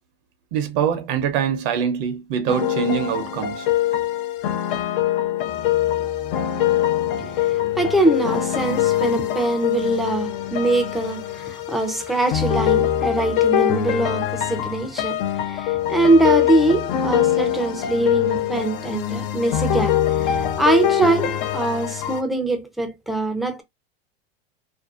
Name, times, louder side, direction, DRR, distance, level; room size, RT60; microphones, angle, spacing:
voice 1, 0.5-3.7, right 7 dB, 55° right, 0.7 m, -24 dB
sound 1, 2.5-22.2, left 11 dB, 60° left, 0.6 m, -23 dB
voice 2, 7.2-23.6, right 2 dB, ahead, 0.5 m, -22 dB
2.6 x 2.2 x 2.4 m
hypercardioid pair, 115°, 31 cm